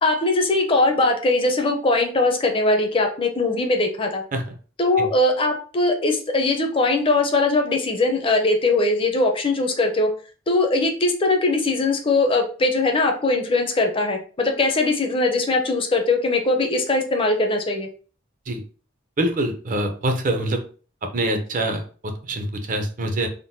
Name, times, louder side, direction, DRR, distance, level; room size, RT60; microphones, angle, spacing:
voice 1, 0.0-4.2 4.8-10.1 10.5-17.9, left 2 dB, 30° left, 4 dB, 0.5 m, -21 dB
voice 2, 19.2-20.6 21.1-23.3, right 1 dB, 45° right, 5 dB, 0.5 m, -25 dB
3.6 x 2.1 x 2.6 m, 0.39 s
head